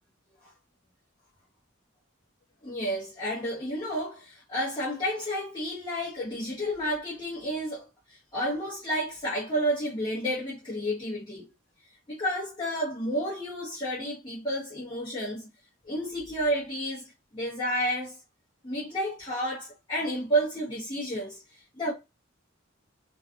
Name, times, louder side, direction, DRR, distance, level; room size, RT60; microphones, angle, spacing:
voice 1, 2.6-11.5 12.1-15.5 15.9-17.0 17.3-18.2 18.6-21.9, equal, 25° left, 0.8 m, -31 dB
2.5 x 2.3 x 2.5 m
head